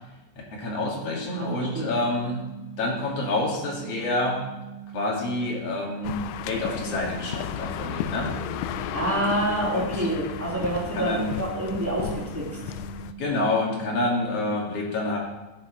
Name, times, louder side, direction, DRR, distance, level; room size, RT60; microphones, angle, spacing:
voice 1, 0.5-2.4 2.8-4.4 4.9-6.2 6.4-8.3 9.7-10.1 10.9-11.3 13.2-15.2, left 2 dB, 45° left, -2 dB, 2.2 m, -27 dB
sound 1, 0.9-14.6, right 10 dB, 25° right, 2.8 m, -42 dB
sound 2, 6.0-13.1, left 11 dB, 85° left, 2.8 m, -34 dB
voice 2, 8.9-12.6, right 1 dB, 5° right, -8 dB, 3.0 m, -27 dB
16.0 x 9.5 x 3.1 m, 1.1 s
omnidirectional pair, 5.2 m